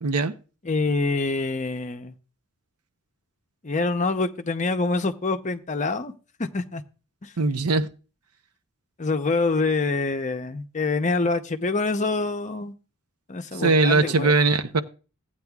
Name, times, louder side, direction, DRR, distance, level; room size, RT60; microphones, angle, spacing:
voice 1, 0.0-0.3 7.4-7.9 13.6-14.8, right 3 dB, 80° right, 0.7 m, -20 dB
voice 2, 0.6-2.1 3.6-6.1 6.4-6.8 7.2-7.3 9.0-12.7 13.3-14.4, left 3 dB, 35° left, 0.6 m, -26 dB
15.0 x 8.8 x 2.3 m
head